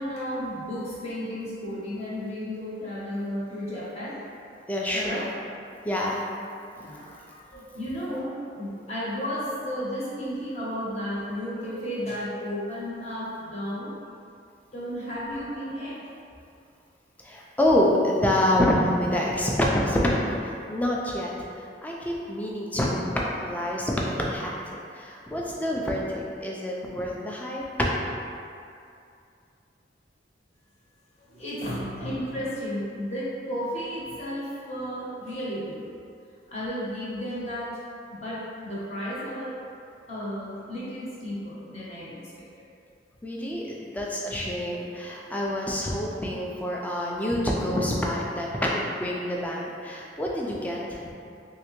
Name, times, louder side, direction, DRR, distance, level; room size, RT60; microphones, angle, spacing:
voice 1, 0.0-4.3 4.9-5.4 6.8-13.9 14.7-16.0 31.3-35.8 36.5-37.7 38.1-39.5 40.1-42.2, equal, 35° left, -8 dB, 0.8 m, -33 dB
voice 2, 4.7-5.3 5.8-6.2 17.2-27.6 43.2-51.0, left 1 dB, 10° left, -3 dB, 0.3 m, -27 dB
3.2 x 2.8 x 3.0 m, 2.5 s
head